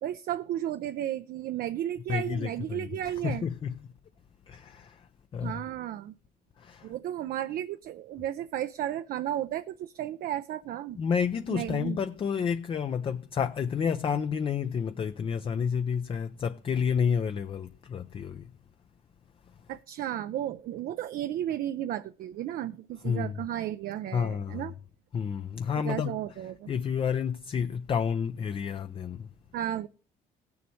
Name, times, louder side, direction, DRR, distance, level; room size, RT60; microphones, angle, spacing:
voice 1, 0.0-3.5 5.4-6.1 6.8-11.0 11.5-12.0 19.7-24.7 25.8-26.7 29.5-29.9, right 12 dB, 60° right, 0.5 m, -33 dB
voice 2, 2.1-3.7 4.5-5.1 5.3-5.6 6.6-6.9 10.9-18.5 23.0-23.4 24.1-24.7 25.1-26.1 26.7-29.3, left 7 dB, 30° left, 0.4 m, -30 dB
16.5 x 7.0 x 3.2 m
cardioid pair, 110°, 17 cm